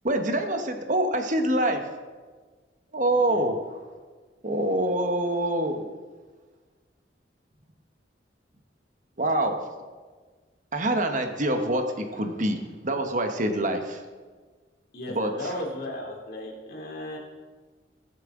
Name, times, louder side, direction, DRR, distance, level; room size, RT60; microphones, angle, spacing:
voice 1, 0.0-1.8 2.9-3.7 4.4-5.9 9.2-9.6 10.7-14.0 15.1-15.3, right 1 dB, 45° right, 5 dB, 1.2 m, -25 dB
voice 2, 3.1-3.4 14.9-17.2, left 1 dB, 55° left, -2 dB, 2.9 m, -36 dB
21.0 x 7.5 x 3.8 m, 1.4 s
head